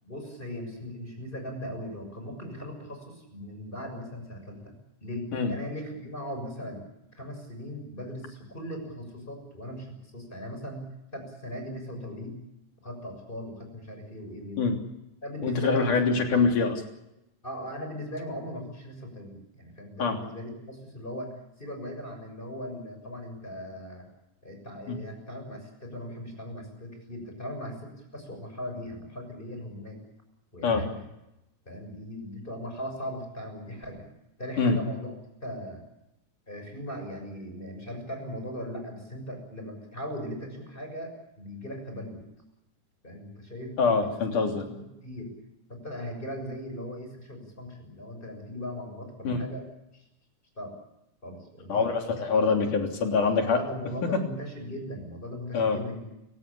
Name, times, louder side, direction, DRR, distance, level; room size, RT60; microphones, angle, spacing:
voice 1, 0.0-4.7 5.0-6.9 7.1-12.4 12.8-14.7 15.2-16.0 17.4-24.1 24.4-30.0 30.5-31.0 31.6-34.0 34.4-35.1 35.4-35.8 36.5-42.2 43.0-43.8 44.5-44.6 45.0-45.3 45.7-49.7 49.9-50.0 50.6-50.7 51.2-51.8 53.4-56.1, equal, 15° left, 4 dB, 6.8 m, -38 dB
voice 2, 15.4-16.8 20.0-20.2 24.9-25.0 30.6-30.8 34.6-34.8 43.8-44.8 49.2-49.4 51.7-53.6 55.5-55.8, left 4 dB, 75° left, 3 dB, 4.8 m, -24 dB
29.5 x 16.5 x 8.5 m, 0.90 s
omnidirectional pair, 3.6 m